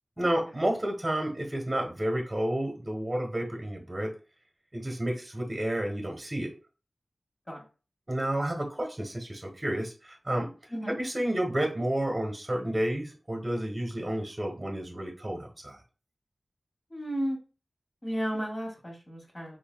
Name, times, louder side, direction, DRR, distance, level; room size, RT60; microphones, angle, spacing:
voice 1, 0.2-4.1 4.7-6.5 8.1-10.5 11.0-15.8, right 1 dB, 25° right, 0 dB, 1.1 m, -30 dB
voice 2, 16.9-17.4 18.0-19.6, equal, 35° left, -2 dB, 2.1 m, -33 dB
4.7 x 3.1 x 2.3 m, 0.33 s
wide cardioid pair, 55°, 0 cm